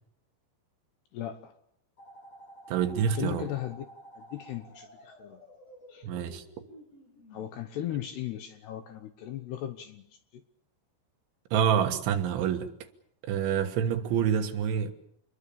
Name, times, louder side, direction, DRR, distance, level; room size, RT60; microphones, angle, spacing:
voice 1, 1.1-1.5 3.0-3.9 4.2-5.4 5.9-6.1 7.3-10.1 10.3-10.4, left 12 dB, 70° left, 2.6 m, -37 dB
sound 1, 2.0-7.4, right 1 dB, 30° left, 9.0 m, -51 dB
voice 2, 2.7-3.5 6.0-6.4 11.5-12.7 13.2-14.9, right 8 dB, 70° right, 3.7 m, -27 dB
27.0 x 21.5 x 7.0 m
omnidirectional pair, 5.8 m